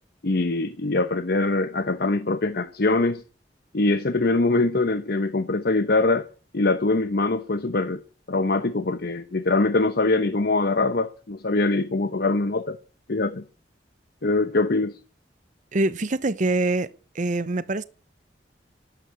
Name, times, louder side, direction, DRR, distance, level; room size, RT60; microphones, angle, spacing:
voice 1, 0.2-3.2 3.7-6.3 6.5-8.0 8.3-12.8 13.1-13.4 14.2-14.9, left 2 dB, 60° left, 0.9 m, -23 dB
voice 2, 15.7-17.8, right 2 dB, 45° right, 0.8 m, -25 dB
12.0 x 9.0 x 9.3 m
head